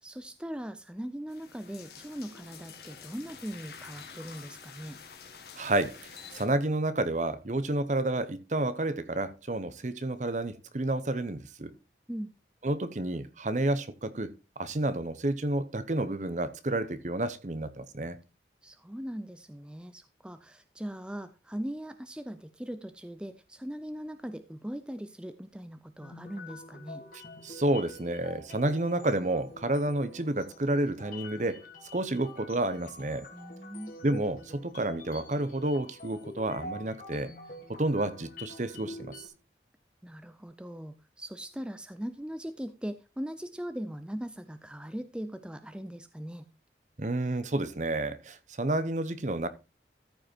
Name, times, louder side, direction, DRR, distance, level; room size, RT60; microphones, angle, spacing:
voice 1, 0.0-5.0 12.1-12.3 18.6-27.0 33.3-33.9 40.0-46.5, equal, 5° right, 0.5 m, -40 dB
sound 1, 1.3-6.5, left 6 dB, 65° left, 1.7 m, -48 dB
voice 2, 5.6-6.0 6.3-11.7 12.6-18.2 27.1-31.6 31.9-33.3 34.0-37.3 37.7-39.1 47.0-49.5, right 2 dB, 45° right, 0.8 m, -30 dB
sound 2, 26.0-39.3, left 2 dB, 50° left, 2.2 m, -47 dB
13.5 x 5.3 x 4.3 m
head